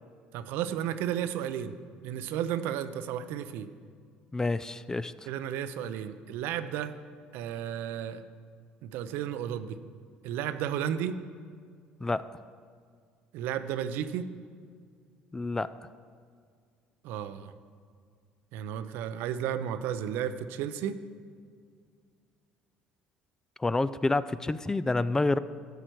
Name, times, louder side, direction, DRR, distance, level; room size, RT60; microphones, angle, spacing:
voice 1, 0.3-1.7 2.0-3.7 5.3-6.9 7.3-8.2 8.8-9.8 10.2-11.2 13.3-14.3 17.0-17.5 18.5-21.0, right 9 dB, 70° right, 11 dB, 0.5 m, -33 dB
voice 2, 4.3-5.1 12.0-12.2 15.3-15.7 23.6-25.4, left 2 dB, 15° left, 15 dB, 0.3 m, -28 dB
13.0 x 7.8 x 4.5 m, 2.1 s
supercardioid pair, 80°, 4 cm